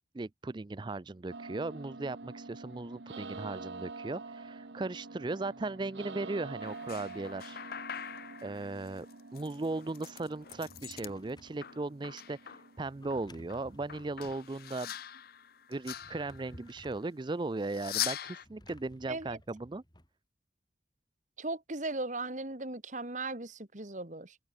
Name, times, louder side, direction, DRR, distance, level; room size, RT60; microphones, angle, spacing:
voice 1, 0.1-7.6 8.4-9.1 9.3-14.9 15.7-19.8, right 2 dB, 25° right, 0.4 m, -37 dB
sound 1, 1.3-15.2, right 3 dB, 75° right, 1.1 m, -47 dB
sound 2, 6.6-11.1 11.5-12.7 13.1-16.8 17.6-18.5, left 11 dB, 55° left, 0.6 m, -42 dB
Drawer open or close, 10.4-11.7 12.8-14.5 15.8-17.1 18.4-20.1, left 1 dB, 25° left, 7.9 m, -56 dB
voice 2, 19.1-19.4 21.4-24.4, right 2 dB, 40° right, 2.1 m, -37 dB
open air
head